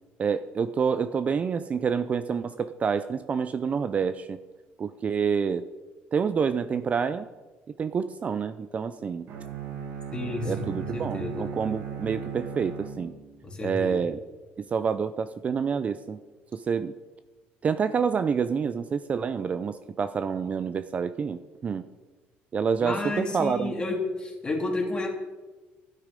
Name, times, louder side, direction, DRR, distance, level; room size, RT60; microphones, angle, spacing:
voice 1, 0.2-4.4 4.8-5.6 6.1-7.3 7.8-9.3 10.4-13.1 13.6-14.2 14.6-16.2 16.5-16.9 17.6-21.9 22.5-23.7, right 6 dB, 35° right, 12 dB, 0.4 m, -28 dB
Bowed string instrument, 9.3-13.5, right 7 dB, 60° right, 1.7 m, -37 dB
voice 2, 10.1-11.5 13.4-14.1 22.8-25.1, left 2 dB, 20° left, 1 dB, 2.7 m, -31 dB
11.5 x 9.1 x 5.2 m, 1.3 s
cardioid pair, 120°, 4 cm